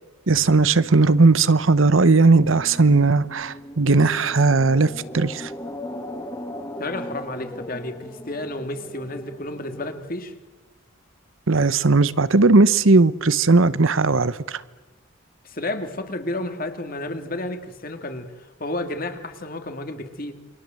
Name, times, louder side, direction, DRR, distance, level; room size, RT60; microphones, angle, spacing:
voice 1, 0.3-5.5 11.5-14.6, right 3 dB, 80° right, 1.0 m, -17 dB
sound 1, 1.4-10.0, left 1 dB, 20° left, 2.2 m, -38 dB
voice 2, 6.8-10.3 15.4-20.3, left 1 dB, 45° left, 2.4 m, -31 dB
28.5 x 24.0 x 7.7 m
head